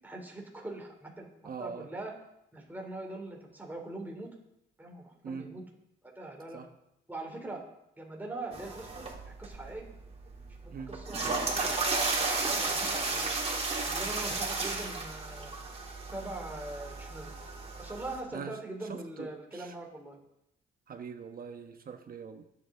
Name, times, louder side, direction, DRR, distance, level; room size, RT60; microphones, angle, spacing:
voice 1, 0.0-2.2 2.5-4.3 4.8-5.6 6.0-6.6 7.1-7.6 8.0-9.9 10.6-13.3 13.9-15.5 16.1-17.3 17.8-20.2, right 2 dB, 10° right, 0 dB, 3.3 m, -42 dB
voice 2, 1.4-1.9 5.2-5.6 6.5-6.7 10.7-11.0 18.3-19.8 20.9-22.4, right 6 dB, 45° right, 7 dB, 1.2 m, -43 dB
sound 1, 8.5-18.2, right 3 dB, 30° right, 3.3 m, -34 dB
23.0 x 8.5 x 3.9 m, 0.82 s
cardioid pair, 90°, 20 cm